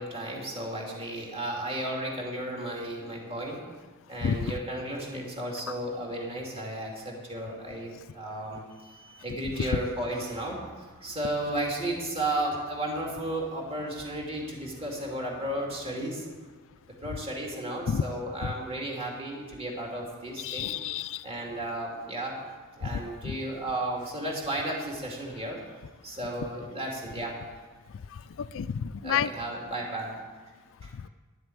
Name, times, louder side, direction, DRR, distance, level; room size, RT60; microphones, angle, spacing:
voice 1, 0.0-3.6 4.1-16.3 17.0-20.7 21.2-22.4 22.8-25.6 26.0-27.3 29.0-30.2 30.8-30.9, right 1 dB, 25° right, -1 dB, 2.7 m, -34 dB
voice 2, 20.4-21.2 22.8-23.4 28.4-29.3, left 7 dB, 60° left, 16 dB, 0.4 m, -30 dB
11.5 x 7.9 x 8.6 m, 1.4 s
head